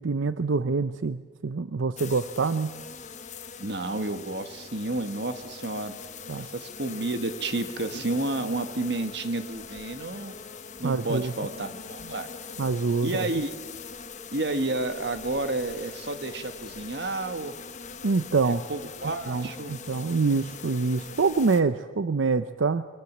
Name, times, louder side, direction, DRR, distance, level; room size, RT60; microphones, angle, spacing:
voice 1, 0.0-2.7 6.3-6.5 10.8-11.3 12.6-13.3 18.0-18.6 19.3-22.8, right 4 dB, 85° right, 12 dB, 0.6 m, -25 dB
sound 1, 2.0-21.6, left 5 dB, 40° left, 1.2 m, -42 dB
voice 2, 3.6-6.0 6.4-10.3 10.8-12.3 13.0-13.5 14.3-17.5 18.4-19.7, right 2 dB, 60° right, 9 dB, 1.5 m, -31 dB
22.0 x 22.0 x 7.4 m, 1.4 s
head